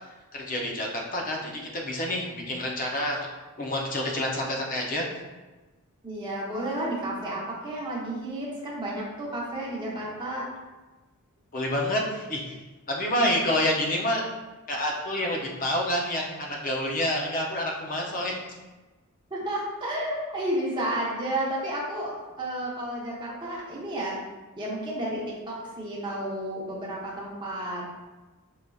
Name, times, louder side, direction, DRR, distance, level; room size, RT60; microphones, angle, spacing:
voice 1, 0.3-3.2 3.6-5.0 11.5-12.5 12.9-14.2 14.7-18.3, left 1 dB, 40° left, 0 dB, 0.6 m, -28 dB
voice 2, 6.0-10.4 19.3-24.2 24.6-27.8, right 1 dB, 20° right, -5 dB, 0.8 m, -32 dB
4.7 x 2.7 x 2.3 m, 1.2 s
head